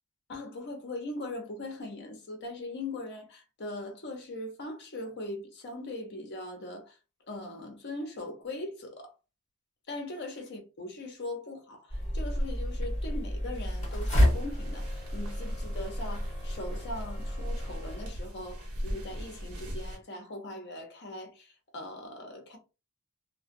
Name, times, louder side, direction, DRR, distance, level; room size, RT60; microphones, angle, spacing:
voice 1, 0.3-7.0 7.3-9.1 9.9-22.6, left 2 dB, 50° left, 0.7 m, -40 dB
sound 1, 11.9-18.1, equal, 35° left, 1.3 m, -30 dB
sound 2, 13.5-20.0, equal, 70° right, 0.9 m, -40 dB
2.3 x 2.2 x 2.6 m
head